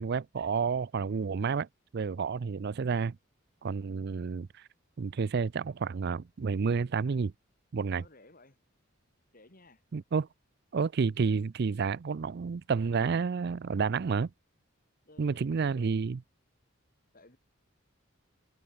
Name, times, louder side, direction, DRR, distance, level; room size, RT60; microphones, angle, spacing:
voice 1, 0.0-1.7 1.9-3.2 3.6-4.5 5.0-7.3 7.7-8.0 9.9-10.3 10.7-14.3 15.2-16.2, right 5 dB, 50° right, 0.4 m, -30 dB
voice 2, 8.0-8.6 9.3-9.8 15.0-15.8 17.1-17.4, left 2 dB, 45° left, 4.9 m, -57 dB
head